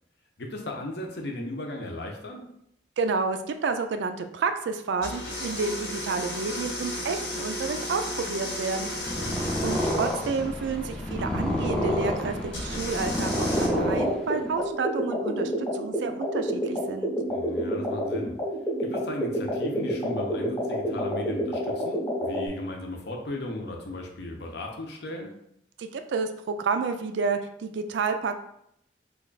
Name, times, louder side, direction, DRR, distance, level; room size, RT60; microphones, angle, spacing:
voice 1, 0.4-2.5 9.0-9.4 17.3-18.4 18.8-25.4, left 1 dB, 65° left, 2 dB, 0.6 m, -36 dB
voice 2, 3.0-8.9 9.6-17.1 25.8-28.3, right 4 dB, 75° right, 8 dB, 0.3 m, -30 dB
sound 1, 5.0-10.5 12.5-13.7, left 1 dB, 90° left, 1.1 m, -34 dB
Purr, 8.9-14.6, equal, 5° left, 0.4 m, -28 dB
sound 2, 13.8-22.5, equal, 20° left, 0.8 m, -29 dB
3.2 x 2.3 x 3.8 m, 0.74 s
head